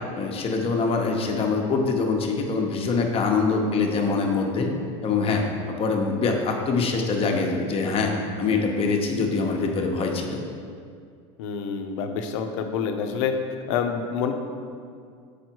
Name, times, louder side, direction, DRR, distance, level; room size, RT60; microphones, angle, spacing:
voice 1, 0.1-4.7 5.0-8.1 8.4-10.4, left 4 dB, 35° left, 2 dB, 0.9 m, -24 dB
voice 2, 11.4-13.4 13.7-14.3, left 6 dB, 80° left, 6 dB, 0.7 m, -27 dB
6.4 x 5.0 x 4.6 m, 2.2 s
supercardioid pair, 120°, 16 cm